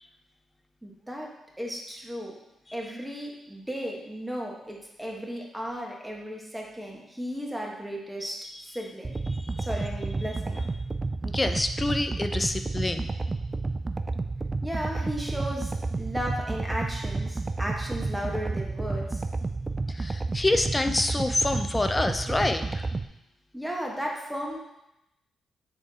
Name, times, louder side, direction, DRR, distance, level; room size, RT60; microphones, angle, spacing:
voice 1, 0.8-2.4 2.7-8.4 8.6-9.1 9.6-10.6 14.6-19.2 23.5-24.6, equal, 10° right, -1 dB, 1.6 m, -35 dB
sound 1, 9.0-23.1, right 3 dB, 35° right, 0.4 m, -31 dB
voice 2, 9.3-9.7 11.2-13.1 19.9-22.9, left 2 dB, 25° left, 7 dB, 0.6 m, -27 dB
7.1 x 3.6 x 4.3 m, 0.88 s
supercardioid pair, 55°, 0 cm